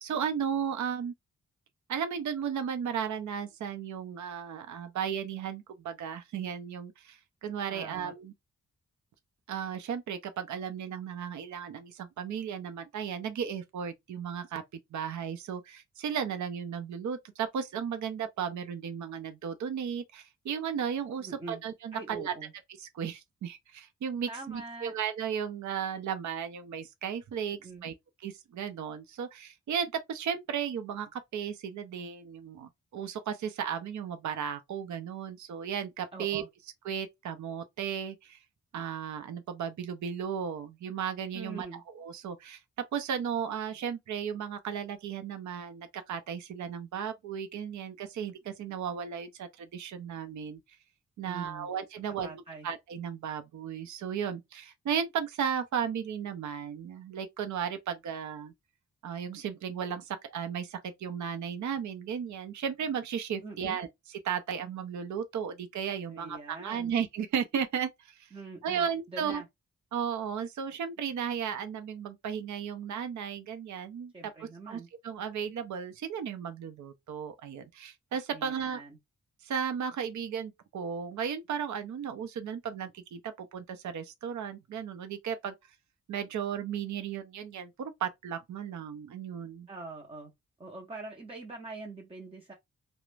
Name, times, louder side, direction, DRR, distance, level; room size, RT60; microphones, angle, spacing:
voice 1, 0.0-1.1 1.9-8.3 9.5-14.6 14.9-22.3 22.8-27.9 28.2-36.4 36.8-38.4 38.7-41.7 41.9-42.6 42.9-50.6 51.2-58.5 59.0-68.3 68.6-69.4 69.9-74.1 74.4-78.8 79.4-85.5 86.1-89.7, right 7 dB, 70° right, 0.5 m, -35 dB
voice 2, 7.7-8.1 21.2-21.6 21.9-22.5 24.3-24.9 27.5-27.9 36.1-36.5 41.3-41.8 51.2-51.7 52.2-52.7 63.4-63.8 66.1-66.9 68.3-69.5 74.1-74.9 78.3-79.0 89.7-90.3 90.6-92.5, right 3 dB, 20° right, 0.5 m, -44 dB
2.4 x 2.0 x 3.1 m
wide cardioid pair, 130°, 31 cm